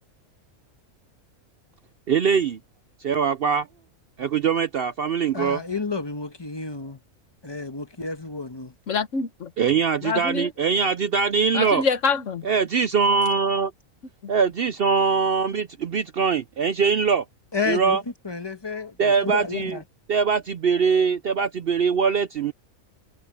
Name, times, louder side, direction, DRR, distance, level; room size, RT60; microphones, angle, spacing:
voice 1, 2.1-2.6 3.0-3.7 4.2-5.6 9.6-11.8 12.4-13.7 14.3-17.2 17.6-18.0 19.0-19.8 20.1-22.5, right 6 dB, 55° right, 0.7 m, -22 dB
voice 2, 5.3-7.0 7.4-8.7 17.5-18.0 18.2-19.8, left 4 dB, 20° left, 1.3 m, -30 dB
voice 3, 8.9-9.5 10.0-10.5 11.5-12.5 14.2-14.3, left 5 dB, 65° left, 1.5 m, -25 dB
omnidirectional pair, 1.4 m